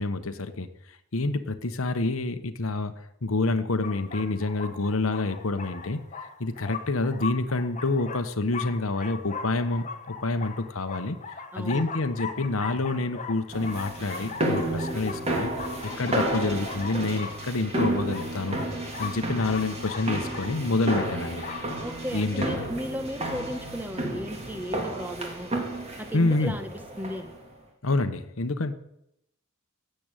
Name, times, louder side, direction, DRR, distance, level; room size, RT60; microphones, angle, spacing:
voice 1, 0.0-11.2 11.5-15.5 15.8-18.6 19.0-21.4 22.1-22.6 26.1-26.5 27.8-28.7, left 2 dB, 65° left, 9 dB, 1.1 m, -28 dB
sound 1, 3.8-21.7, left 5 dB, 35° left, 1.3 m, -40 dB
voice 2, 11.5-11.8 21.8-25.5 26.0-26.7 27.0-27.3, equal, 10° right, 8 dB, 1.3 m, -35 dB
sound 2, 13.5-27.4, right 1 dB, 30° right, 2.9 m, -32 dB
17.0 x 7.9 x 9.1 m, 0.81 s
head